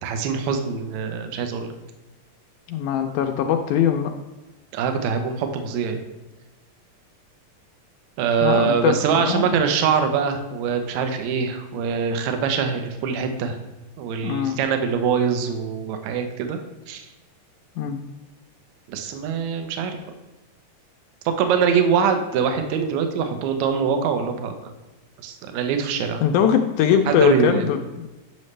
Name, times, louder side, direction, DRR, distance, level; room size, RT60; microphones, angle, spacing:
voice 1, 0.0-1.7 4.7-6.0 8.2-13.6 14.0-16.6 16.9-17.1 18.9-20.0 21.3-24.7 25.2-26.2 27.1-27.7, right 6 dB, 70° right, 6 dB, 1.9 m, -23 dB
voice 2, 2.7-4.1 8.4-9.5 14.2-14.6 17.8-18.0 26.2-28.1, left 9 dB, 80° left, 5 dB, 1.8 m, -21 dB
9.5 x 6.3 x 3.2 m, 1.1 s
omnidirectional pair, 3.9 m